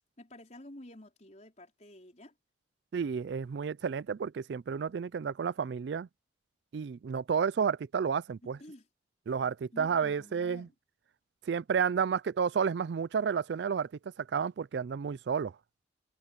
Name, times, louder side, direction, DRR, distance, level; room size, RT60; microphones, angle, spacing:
voice 1, 0.0-2.3 8.4-8.9 9.7-10.7, left 1 dB, 35° left, 4.7 m, -51 dB
voice 2, 2.9-6.1 6.7-8.6 9.3-10.7 11.5-13.9 14.2-15.5, right 6 dB, 65° right, 0.4 m, -31 dB
head